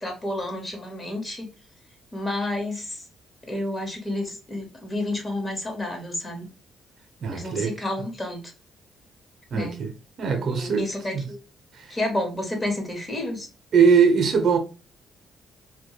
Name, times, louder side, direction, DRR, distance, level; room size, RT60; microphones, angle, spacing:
voice 1, 0.0-1.5 2.1-3.0 3.5-6.5 7.3-8.5 9.5-9.8 10.3-11.4 11.9-13.5, left 1 dB, 25° left, 1.0 m, -30 dB
voice 2, 7.2-7.7 9.5-9.9 10.2-10.9 11.1-11.2 13.7-14.6, right 6 dB, 60° right, 0.6 m, -20 dB
2.2 x 2.1 x 2.8 m
cardioid pair, 90°, 0 cm